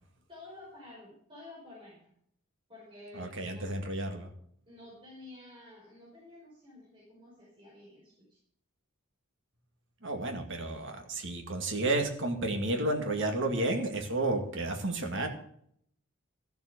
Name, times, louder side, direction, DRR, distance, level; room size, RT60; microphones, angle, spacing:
voice 1, 0.3-2.0 2.7-3.7 4.7-8.4, left 2 dB, 25° right, -6 dB, 5.3 m, -51 dB
voice 2, 3.1-4.3 10.0-15.3, right 2 dB, 60° right, 4 dB, 2.3 m, -31 dB
14.5 x 7.2 x 6.7 m, 0.67 s
head